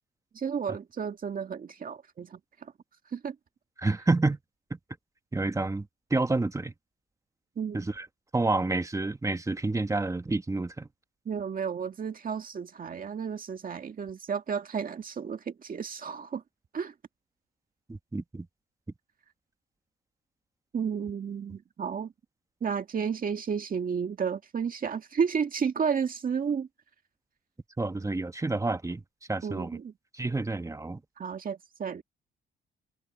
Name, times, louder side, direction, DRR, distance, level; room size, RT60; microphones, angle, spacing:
voice 1, 0.3-2.7 3.1-3.4 7.6-7.8 11.3-16.4 16.7-16.9 20.7-22.1 22.6-26.7 29.4-29.9 31.2-32.0, right 6 dB, 45° right, 2.0 m, -32 dB
voice 2, 3.8-4.4 5.3-5.8 6.1-6.7 7.7-8.0 8.3-10.9 17.9-18.5 27.8-29.0 29.3-29.8 30.1-31.0, right 2 dB, 15° right, 1.3 m, -29 dB
cardioid pair, 90°, 20 cm